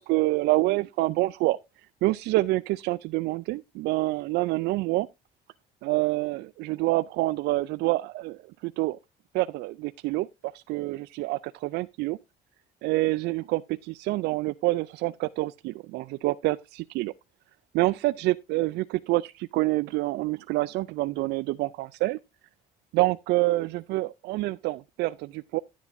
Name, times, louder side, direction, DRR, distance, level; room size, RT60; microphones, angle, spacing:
voice 1, 0.0-5.1 5.8-9.0 9.3-12.2 12.8-17.1 17.7-22.2 22.9-25.6, right 19 dB, 80° right, 0.4 m, -27 dB
10.0 x 9.4 x 2.6 m
cardioid pair, 110°, 17 cm